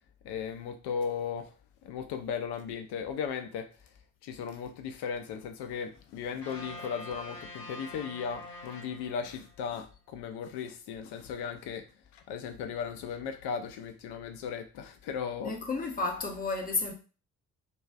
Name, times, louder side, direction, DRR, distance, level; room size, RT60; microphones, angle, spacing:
voice 1, 0.2-1.5 1.8-3.7 4.2-11.9 12.1-15.6, left 7 dB, 55° left, 0.5 m, -36 dB
sound 1, 6.4-9.7, left 1 dB, 90° left, 0.9 m, -45 dB
voice 2, 15.4-16.9, left 3 dB, 20° left, 0.7 m, -32 dB
2.5 x 2.3 x 2.2 m
figure-of-eight pair, 40°, 47 cm